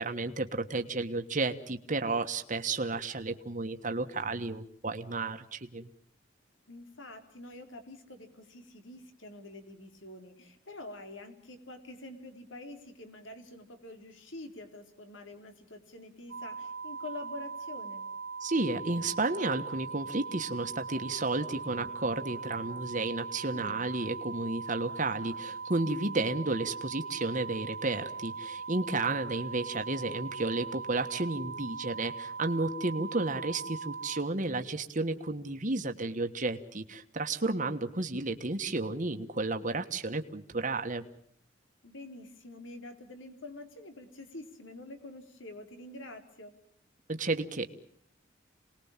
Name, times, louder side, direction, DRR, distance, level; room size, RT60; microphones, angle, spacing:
voice 1, 0.0-5.9 18.4-41.0 47.1-47.7, right 3 dB, 40° right, 6 dB, 1.4 m, -32 dB
voice 2, 6.7-18.0 23.5-23.9 41.8-46.5, left 2 dB, 80° left, 6 dB, 4.0 m, -46 dB
sound 1, 16.3-34.2, right 5 dB, 65° right, 1.0 m, -40 dB
27.5 x 20.0 x 7.3 m, 0.65 s
head